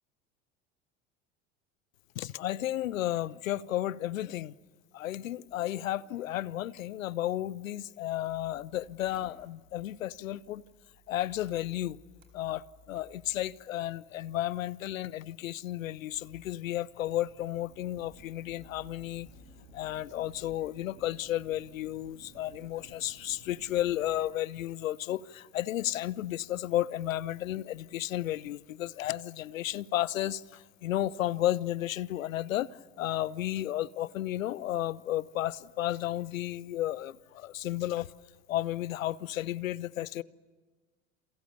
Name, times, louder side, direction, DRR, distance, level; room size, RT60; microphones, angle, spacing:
voice 1, 2.1-4.5 4.9-10.6 11.1-12.0 12.3-19.3 19.7-38.1 38.5-40.2, left 13 dB, 80° left, 0.8 m, -33 dB
Mechanical fan, 8.1-24.2, right 1 dB, 75° right, 4.4 m, -57 dB
29.0 x 28.0 x 6.8 m
hypercardioid pair, 75°, 39 cm